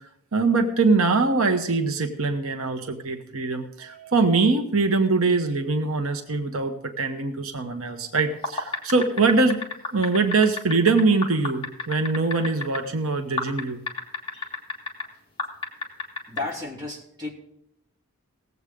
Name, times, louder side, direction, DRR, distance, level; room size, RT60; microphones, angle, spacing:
voice 1, 0.3-9.6 9.9-13.8, right 3 dB, 85° right, 6 dB, 1.1 m, -23 dB
sound 1, 8.3-12.8 13.4-15.0 15.4-16.4, left 4 dB, 25° left, 1.7 m, -29 dB
voice 2, 16.3-17.3, left 2 dB, 20° right, -4 dB, 2.9 m, -33 dB
18.5 x 8.0 x 3.7 m, 0.76 s
head